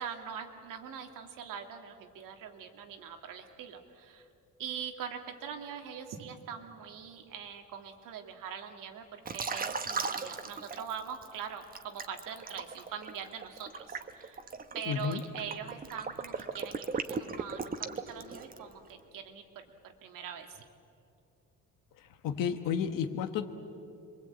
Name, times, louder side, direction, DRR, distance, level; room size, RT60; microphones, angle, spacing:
voice 1, 0.0-4.3 4.6-14.4 14.7-20.6, right 7 dB, 90° right, 5 dB, 2.2 m, -43 dB
Liquid, 9.3-11.3 11.7-18.7, right 5 dB, 30° right, 1.1 m, -37 dB
voice 2, 14.8-15.2 21.9-23.5, left 7 dB, 90° left, 6 dB, 1.4 m, -32 dB
26.5 x 22.5 x 8.5 m, 2.7 s
cardioid pair, 150°, 32 cm